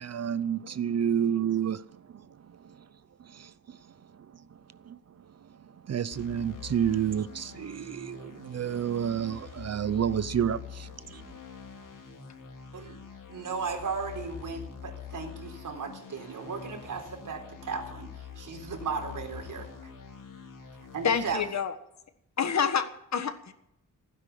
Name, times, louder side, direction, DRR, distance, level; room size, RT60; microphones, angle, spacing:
voice 1, 0.0-2.9 3.2-11.3, right 9 dB, 55° right, 0.6 m, -31 dB
sound 1, 6.1-21.5, left 7 dB, 80° left, 3.3 m, -45 dB
voice 2, 13.3-19.7 20.9-21.4, right 5 dB, 80° right, 3.8 m, -36 dB
voice 3, 21.0-21.7 22.4-23.5, left 7 dB, 60° left, 1.5 m, -28 dB
16.5 x 9.9 x 8.5 m
wide cardioid pair, 165°, 32 cm